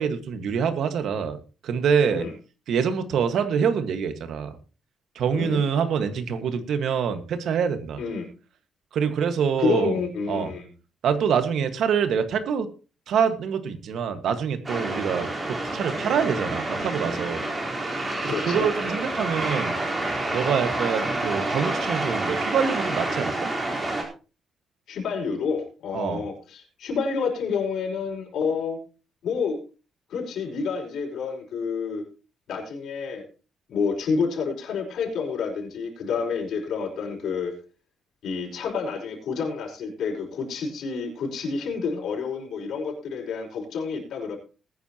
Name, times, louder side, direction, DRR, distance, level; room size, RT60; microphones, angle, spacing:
voice 1, 0.0-1.4 1.6-2.2 2.7-4.6 5.1-8.0 8.9-10.0 10.3-10.5 11.0-12.7 13.1-17.4 18.2-19.7 20.3-23.5 25.9-26.2, right 7 dB, 65° right, 9 dB, 1.7 m, -25 dB
voice 2, 9.6-10.7 18.2-18.7 24.9-28.8 29.2-29.6 30.1-32.0 32.5-33.2 33.7-37.6 38.2-44.4, left 5 dB, 70° left, -1 dB, 5.2 m, -29 dB
sound 1, 14.6-24.0, right 2 dB, 20° right, 4.2 m, -28 dB
20.5 x 9.9 x 3.0 m, 0.34 s
cardioid pair, 140°, 0 cm